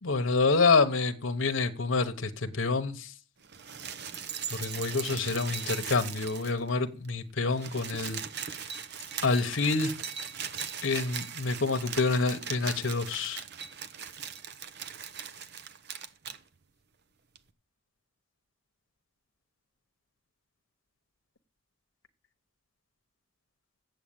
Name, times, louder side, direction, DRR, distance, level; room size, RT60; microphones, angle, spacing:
voice 1, 0.0-3.1 4.5-8.2 9.2-9.9 10.8-13.4, left 4 dB, 70° left, 1.0 m, -27 dB
sound 1, 3.4-6.8 7.0-7.1 7.4-16.4 17.4-17.5, right 7 dB, 55° right, 0.9 m, -39 dB
8.1 x 7.9 x 8.8 m
head